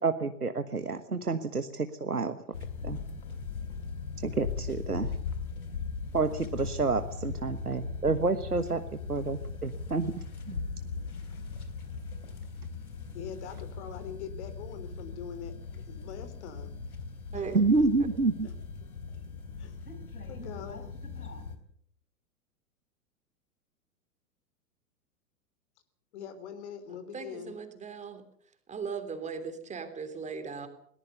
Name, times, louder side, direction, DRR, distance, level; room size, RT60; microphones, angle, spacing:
voice 1, 0.0-2.4 2.8-3.0 4.2-5.1 6.1-10.1 10.5-10.6 17.5-18.5, right 3 dB, 90° right, 10 dB, 1.4 m, -29 dB
sound 1, 2.5-21.6, left 5 dB, 75° left, 4.1 m, -39 dB
voice 2, 2.7-3.7 5.5-5.6 10.8-11.3 13.1-15.5 15.9-16.7 17.3-17.6 18.4-18.5 19.1-19.7 20.3-20.9 26.1-27.6, left 8 dB, 50° left, 12 dB, 3.9 m, -44 dB
voice 3, 26.9-28.2 28.7-30.7, right 5 dB, 15° right, 8 dB, 3.1 m, -38 dB
21.5 x 19.0 x 6.9 m, 0.66 s
figure-of-eight pair, 100°, 44 cm